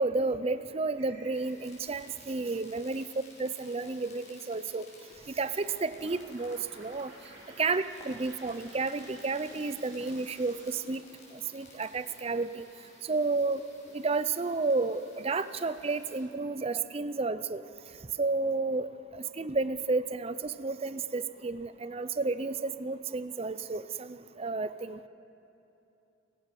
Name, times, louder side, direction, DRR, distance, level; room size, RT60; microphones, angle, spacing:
voice 1, 0.0-3.1 3.4-4.9 5.4-7.1 7.6-11.0 11.5-12.7 13.0-13.6 13.9-17.6 18.2-18.9 19.1-25.0, right 3 dB, 30° right, 14 dB, 0.5 m, -31 dB
sound 1, 1.0-1.4 5.1-10.7, right 1 dB, 65° right, 5.8 m, -54 dB
sound 2, 1.3-16.2, left 3 dB, 35° left, 5.7 m, -57 dB
sound 3, 4.0-4.3 4.5-11.7 12.0-12.8 13.0-13.2 13.5-13.6, equal, 20° left, 3.3 m, -59 dB
28.5 x 16.5 x 6.0 m, 2.9 s
head